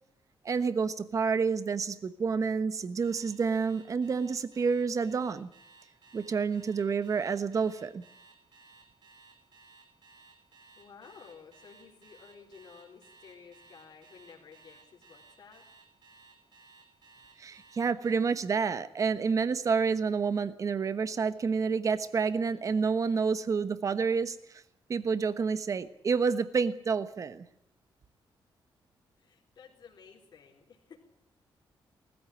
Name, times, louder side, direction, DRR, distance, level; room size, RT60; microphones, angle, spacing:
voice 1, 0.4-5.5 6.1-8.0 17.4-24.6 24.9-27.5, right 5 dB, 35° right, 13 dB, 1.2 m, -29 dB
Alarm, 3.0-18.2, right 4 dB, 60° right, 6.1 m, -57 dB
voice 2, 10.8-15.7 29.2-31.1, left 6 dB, 50° left, -2 dB, 4.1 m, -54 dB
20.0 x 14.5 x 9.9 m, 0.77 s
wide cardioid pair, 165°, 9 cm